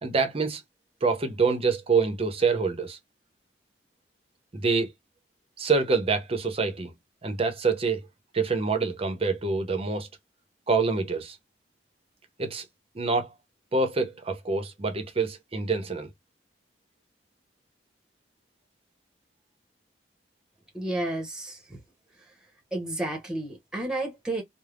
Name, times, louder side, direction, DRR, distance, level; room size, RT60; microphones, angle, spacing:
voice 1, 0.0-0.6 1.0-3.0 4.5-4.9 5.6-6.9 7.2-8.0 8.3-10.1 10.7-11.4 12.4-12.6 12.9-13.3 13.7-16.1, right 4 dB, 35° right, 0.7 m, -26 dB
voice 2, 20.7-21.8 22.1-22.3 22.7-24.4, right 1 dB, 5° right, 0.9 m, -32 dB
3.4 x 2.0 x 2.3 m
head